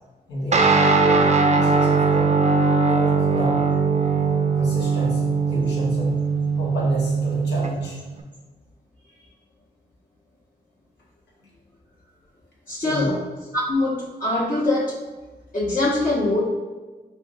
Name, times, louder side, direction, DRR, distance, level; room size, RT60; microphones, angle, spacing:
voice 1, 0.3-2.3 2.8-3.6 4.6-6.2 6.6-8.0 12.8-13.1, equal, 80° left, -4 dB, 1.2 m, -30 dB
Guitar, 0.5-8.2, right 4 dB, 40° right, 0.5 m, -20 dB
voice 2, 12.7-13.1 13.5-14.9 15.5-16.5, left 2 dB, 50° left, -10 dB, 1.3 m, -23 dB
5.6 x 2.4 x 2.5 m, 1.2 s
cardioid pair, 55°, 18 cm